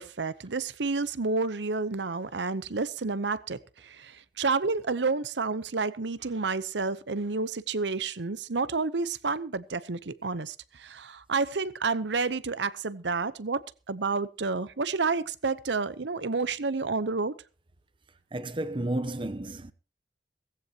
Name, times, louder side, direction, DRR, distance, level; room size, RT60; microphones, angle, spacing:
voice 1, 0.0-17.3, right 4 dB, 85° right, 0.9 m, -30 dB
voice 2, 18.3-19.7, right 1 dB, 30° right, 0.8 m, -32 dB
17.5 x 15.5 x 3.0 m
head